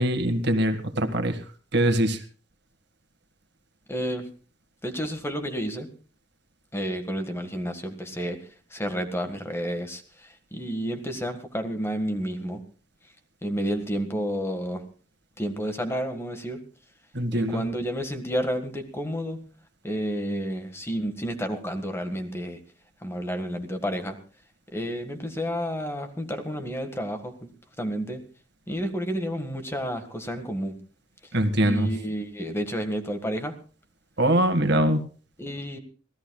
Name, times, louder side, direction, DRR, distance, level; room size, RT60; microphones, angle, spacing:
voice 1, 0.0-1.4 1.7-2.2 17.1-17.6 31.3-31.9 34.2-35.0, right 1 dB, 65° right, 8 dB, 1.8 m, -23 dB
voice 2, 3.9-4.3 4.8-5.9 6.7-8.4 8.7-12.6 13.4-14.8 15.4-16.6 17.3-19.4 19.8-22.6 23.0-24.2 24.7-27.5 27.8-28.2 28.7-30.8 31.6-33.5 35.4-35.8, equal, 15° left, 7 dB, 1.7 m, -30 dB
25.5 x 16.5 x 2.3 m, 0.38 s
head